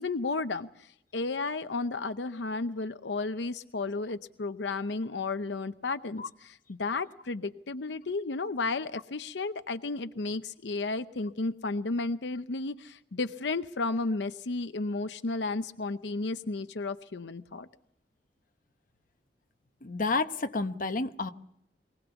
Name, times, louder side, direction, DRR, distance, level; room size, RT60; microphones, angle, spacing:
voice 1, 0.0-17.7, left 3 dB, 85° left, 11 dB, 0.8 m, -33 dB
voice 2, 19.8-21.3, left 3 dB, 50° left, 8 dB, 1.0 m, -30 dB
23.5 x 18.0 x 7.1 m, 0.76 s
head